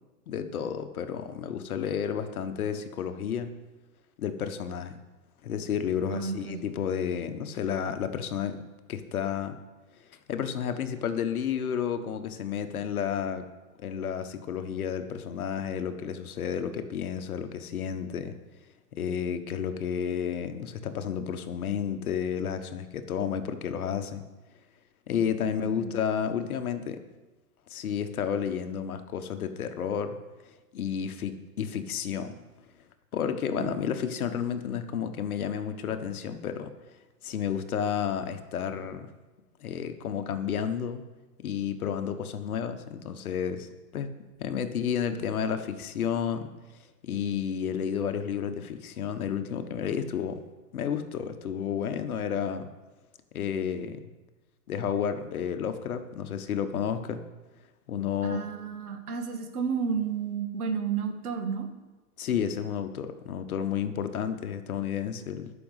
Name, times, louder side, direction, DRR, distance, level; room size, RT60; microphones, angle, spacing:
voice 1, 0.3-3.5 4.2-5.0 5.4-8.6 8.9-9.6 10.3-13.4 13.8-18.3 18.9-24.3 25.1-27.0 27.7-30.2 30.7-32.3 33.1-36.7 37.2-39.1 39.6-41.0 41.4-43.7 43.9-44.1 44.4-46.5 47.0-50.4 50.7-52.7 53.3-54.0 54.7-57.2 57.9-58.5 62.2-65.5, left 8 dB, 60° left, 9 dB, 1.3 m, -31 dB
voice 2, 6.1-6.6 25.8-25.9 33.6-33.7 58.2-61.7, right 6 dB, 65° right, 6 dB, 2.1 m, -31 dB
11.5 x 6.2 x 8.1 m, 1.2 s
hypercardioid pair, 150°, 48 cm